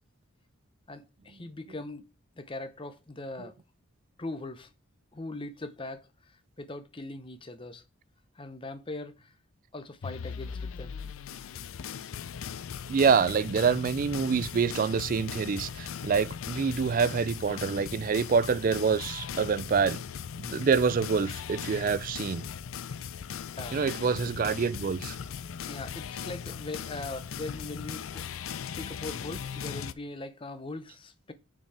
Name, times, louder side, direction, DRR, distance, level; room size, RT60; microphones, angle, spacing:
voice 1, 0.9-2.1 2.4-3.5 4.2-4.7 5.1-7.8 8.3-9.3 9.7-11.0 23.6-23.8 24.2-24.3 25.7-28.3 28.6-31.3, left 2 dB, 25° left, 0.7 m, -40 dB
sound 1, 10.0-29.9, left 7 dB, 70° left, 0.4 m, -38 dB
voice 2, 12.9-20.0 20.4-22.4 23.7-25.2, right 5 dB, 40° right, 0.3 m, -26 dB
6.0 x 4.5 x 4.8 m
head